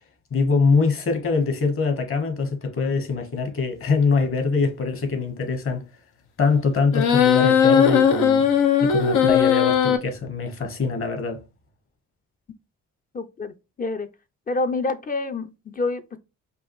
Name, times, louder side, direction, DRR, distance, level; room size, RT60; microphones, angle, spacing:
voice 1, 0.3-5.9 6.4-8.5 8.8-11.4, left 4 dB, 45° left, 1.4 m, -23 dB
sound 1, 6.9-10.0, left 8 dB, 80° left, 0.8 m, -18 dB
voice 2, 13.1-14.1 14.5-16.2, left 3 dB, 30° left, 0.5 m, -27 dB
5.3 x 2.4 x 3.1 m
cardioid pair, 90°, 30 cm